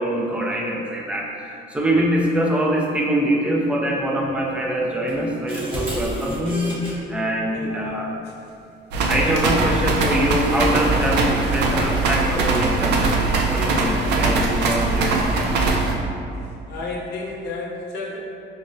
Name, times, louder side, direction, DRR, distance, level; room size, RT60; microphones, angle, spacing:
voice 1, 0.0-6.7 7.1-8.1 9.1-13.2 13.5-15.6, right 1 dB, 5° right, -2 dB, 0.3 m, -24 dB
sound 1, 5.1-6.9 9.6-9.8 10.3-11.1, right 1 dB, 30° right, 0.8 m, -31 dB
voice 2, 7.5-8.6 16.3-18.2, left 3 dB, 65° left, -2 dB, 0.6 m, -33 dB
sound 2, 8.9-15.9, right 3 dB, 75° right, 0.4 m, -21 dB
5.3 x 2.0 x 2.5 m, 2.5 s
cardioid pair, 165°, 18 cm